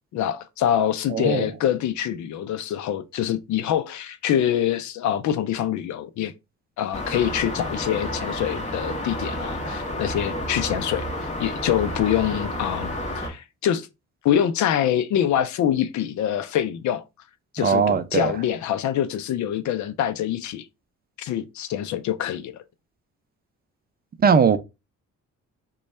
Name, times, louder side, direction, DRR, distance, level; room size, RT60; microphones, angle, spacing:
voice 1, 0.1-6.3 6.8-11.1 11.4-13.9 14.2-17.0 17.5-20.7 21.2-22.6, left 10 dB, 70° left, 0.5 m, -25 dB
voice 2, 1.1-1.5 17.6-18.3 24.2-24.6, right 6 dB, 30° right, 0.5 m, -19 dB
sound 1, 6.9-13.3, left 1 dB, 25° left, 1.3 m, -30 dB
3.1 x 2.3 x 4.1 m
cardioid pair, 90°, 30 cm